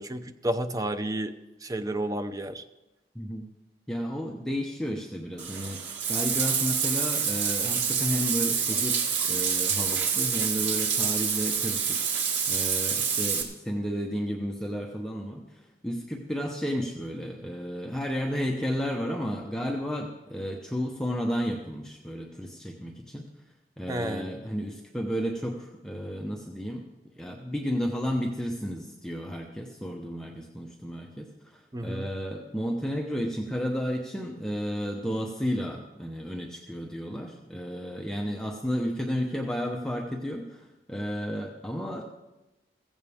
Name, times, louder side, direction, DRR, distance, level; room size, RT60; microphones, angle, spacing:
voice 1, 0.0-1.3 1.6-2.6 23.9-24.4 31.7-32.1, right 1 dB, 20° right, 9 dB, 0.5 m, -31 dB
voice 2, 3.9-5.8 6.1-12.0 12.5-23.3 23.8-26.8 27.2-42.0, equal, 5° left, 0 dB, 0.9 m, -32 dB
Bathtub (filling or washing), 5.4-13.4, right 6 dB, 85° right, 2.0 m, -27 dB
15.5 x 15.5 x 3.5 m, 1.0 s
head